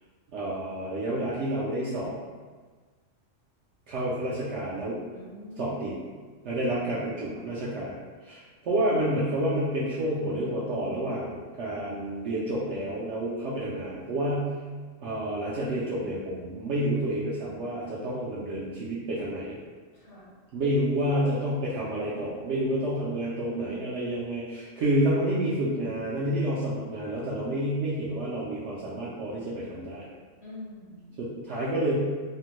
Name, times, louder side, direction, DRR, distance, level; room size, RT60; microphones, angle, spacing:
voice 1, 0.3-2.1 3.9-5.0 5.6-5.9 6.4-7.9 8.2-14.5 15.0-19.6 20.5-30.1 31.2-32.0, right 1 dB, 70° right, -7 dB, 0.8 m, -29 dB
voice 2, 5.1-5.9 6.7-7.6 19.9-20.3 30.4-31.1, equal, 65° left, -9 dB, 1.0 m, -45 dB
3.4 x 2.1 x 2.9 m, 1.4 s
omnidirectional pair, 1.3 m